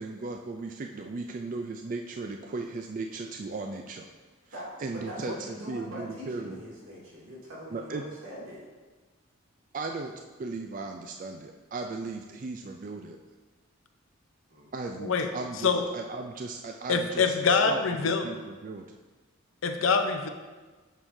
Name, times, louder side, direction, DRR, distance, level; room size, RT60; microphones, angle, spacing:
voice 1, 0.0-4.1 4.8-6.6 7.7-8.0 9.7-10.1 10.4-13.2 14.7-18.9, right 3 dB, 40° right, 4 dB, 0.3 m, -36 dB
voice 2, 4.5-8.7 14.5-14.7, equal, 85° right, -6 dB, 2.4 m, -42 dB
voice 3, 16.9-18.2 19.6-20.3, left 5 dB, 75° left, 6 dB, 0.6 m, -25 dB
9.1 x 6.3 x 2.7 m, 1.3 s
head